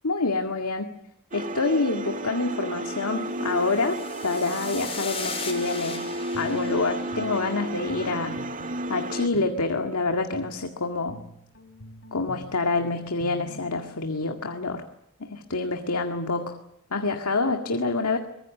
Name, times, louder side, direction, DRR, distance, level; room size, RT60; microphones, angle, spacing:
voice 1, 0.0-0.9 1.3-8.4 8.9-11.2 12.1-14.8 15.2-16.6 16.9-18.2, left 3 dB, 80° left, 5 dB, 2.0 m, -27 dB
sound 1, 1.3-9.3, right 1 dB, 35° right, 1.8 m, -33 dB
sound 2, 3.5-8.0, left 6 dB, 25° left, 4.8 m, -39 dB
Guitar, 6.1-14.1, left 1 dB, 60° left, 3.5 m, -47 dB
24.0 x 21.0 x 8.4 m, 0.78 s
head